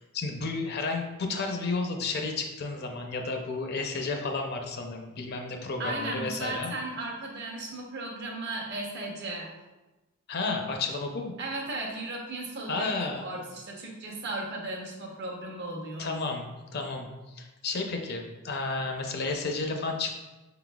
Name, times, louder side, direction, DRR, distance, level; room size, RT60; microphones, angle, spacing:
voice 1, 0.0-6.7 10.3-11.3 12.7-13.3 16.0-16.5 16.7-17.1 17.4-20.1, left 3 dB, 50° left, 3 dB, 0.5 m, -32 dB
voice 2, 5.8-9.5 11.4-16.2, right 2 dB, 55° right, -2 dB, 0.9 m, -36 dB
5.3 x 3.9 x 2.3 m, 1.1 s
head